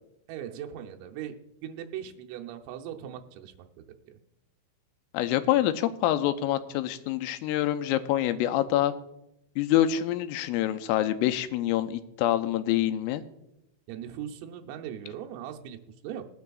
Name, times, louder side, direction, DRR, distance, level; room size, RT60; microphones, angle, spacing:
voice 1, 0.3-4.1 13.9-16.3, right 10 dB, 85° right, 4 dB, 3.5 m, -40 dB
voice 2, 5.1-8.9 9.6-13.2, left 12 dB, 85° left, 9 dB, 3.2 m, -26 dB
21.0 x 9.4 x 2.4 m, 0.83 s
omnidirectional pair, 5.8 m